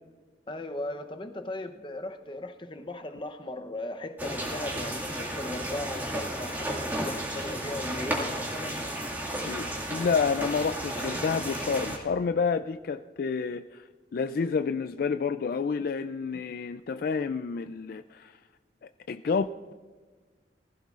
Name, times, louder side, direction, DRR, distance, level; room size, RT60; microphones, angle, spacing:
voice 1, 0.5-8.8, left 1 dB, 30° left, 7 dB, 0.8 m, -37 dB
sound 1, 4.2-12.0, right 1 dB, 10° right, 2.0 m, -33 dB
voice 2, 9.4-18.4 18.8-19.7, left 5 dB, 55° left, 10 dB, 0.3 m, -29 dB
19.5 x 15.0 x 2.5 m, 1.4 s
head